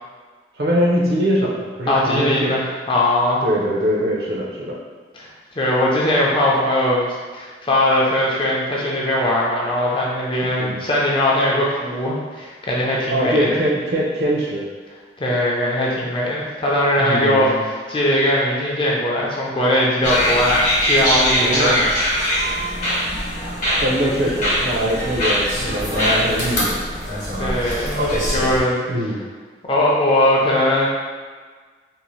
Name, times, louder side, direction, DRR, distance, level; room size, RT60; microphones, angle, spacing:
voice 1, 0.6-2.6 3.4-4.8 10.5-10.8 13.1-14.7 17.0-17.6 21.4-21.8 23.8-26.8 28.9-29.2, equal, 65° right, -3 dB, 0.5 m, -22 dB
voice 2, 1.9-3.4 5.1-5.3 5.6-13.6 15.2-21.8 27.3-28.8 29.7-30.9, left 1 dB, 30° left, -4 dB, 0.4 m, -20 dB
sound 1, 20.0-28.6, equal, 45° left, 0.9 m, -21 dB
2.6 x 2.1 x 3.0 m, 1.5 s
head